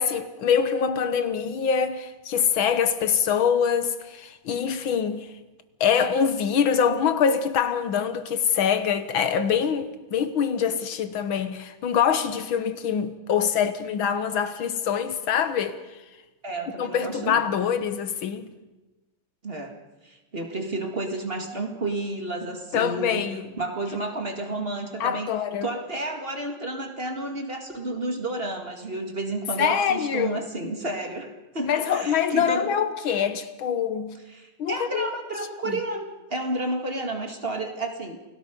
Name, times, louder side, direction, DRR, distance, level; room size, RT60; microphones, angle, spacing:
voice 1, 0.0-5.3 5.8-15.8 16.8-18.5 22.7-23.5 25.0-25.8 29.6-30.3 31.7-34.2 34.6-35.1 35.6-35.8, left 7 dB, 85° left, 2.0 m, -24 dB
voice 2, 16.4-17.5 19.4-19.7 20.0-23.3 23.6-25.3 25.6-32.7 34.3-38.2, right 2 dB, 30° right, 2.2 m, -31 dB
28.5 x 18.0 x 5.3 m
omnidirectional pair, 2.1 m